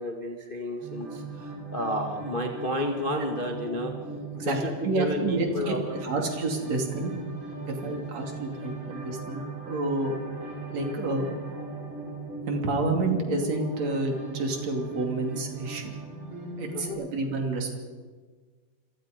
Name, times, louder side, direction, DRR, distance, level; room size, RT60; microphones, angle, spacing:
voice 1, 0.0-4.0 4.4-5.8 7.6-7.8 16.7-17.0, left 1 dB, 85° left, 2 dB, 0.4 m, -32 dB
sound 1, 0.8-16.9, right 3 dB, 30° right, 5.0 m, -39 dB
voice 2, 4.8-5.8 6.0-7.1 7.7-10.2 10.7-11.3 12.5-15.9 16.6-17.8, right 2 dB, 45° right, 2 dB, 3.7 m, -29 dB
28.0 x 23.0 x 5.2 m, 1.5 s
omnidirectional pair, 4.5 m